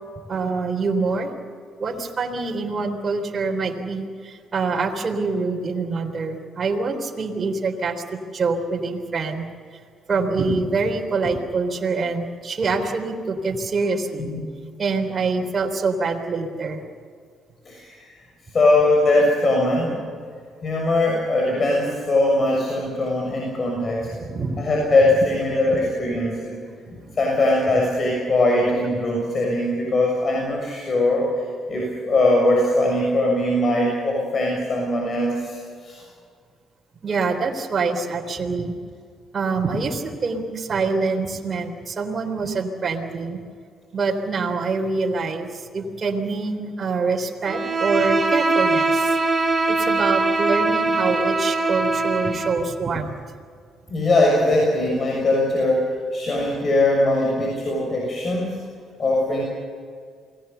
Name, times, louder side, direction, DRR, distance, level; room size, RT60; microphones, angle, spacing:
voice 1, 0.3-1.3 1.8-9.8 10.1-14.3 14.8-16.8 24.1-24.7 37.0-38.7 39.3-43.4 43.9-49.2 49.7-53.1, right 4 dB, 45° right, 1 dB, 3.6 m, -25 dB
voice 2, 17.6-18.1 18.5-20.0 20.6-24.1 24.6-26.5 26.9-31.3 31.7-36.0 52.3-52.4 53.9-58.6 59.0-59.4, left 2 dB, 45° left, -1 dB, 6.8 m, -21 dB
Bowed string instrument, 47.4-52.6, right 3 dB, 25° right, 7.0 m, -22 dB
28.5 x 19.5 x 7.0 m, 2.1 s
supercardioid pair, 55°, 0 cm